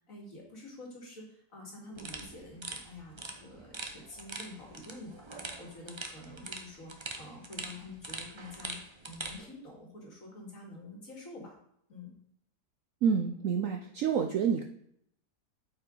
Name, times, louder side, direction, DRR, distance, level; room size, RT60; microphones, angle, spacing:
voice 1, 0.1-6.9 7.2-8.8 9.0-11.6 11.9-12.1, left 2 dB, 50° left, -2 dB, 2.6 m, -48 dB
sound 1, 2.0-9.4, right 3 dB, 35° right, 0.4 m, -43 dB
voice 2, 13.0-14.6, right 7 dB, 65° right, 5 dB, 0.8 m, -28 dB
8.8 x 5.5 x 3.8 m, 0.71 s
omnidirectional pair, 1.9 m